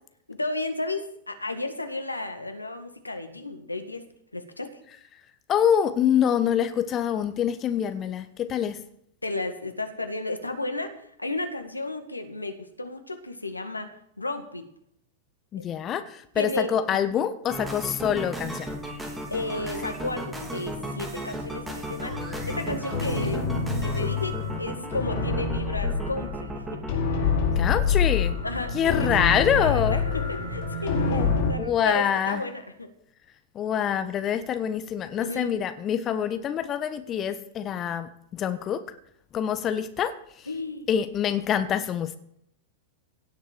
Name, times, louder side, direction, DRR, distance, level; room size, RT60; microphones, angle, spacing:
voice 1, 0.3-4.0 4.3-4.8 9.2-14.6 15.6-15.7 16.4-17.0 19.3-26.8 28.4-29.1 29.5-32.9 35.2-35.5 40.5-40.9, left 2 dB, 90° left, 8 dB, 1.8 m, -33 dB
voice 2, 5.5-8.8 15.5-18.8 27.5-28.3 28.7-30.0 31.1-32.4 33.5-38.8 39.3-40.5 40.9-42.2, left 9 dB, 30° left, 10 dB, 1.2 m, -26 dB
sound 1, 17.5-26.9, right 1 dB, 10° right, 3.2 m, -35 dB
sound 2, 22.1-31.5, left 4 dB, 55° left, 4.8 m, -27 dB
17.0 x 7.4 x 7.5 m, 0.72 s
figure-of-eight pair, 95°, 0 cm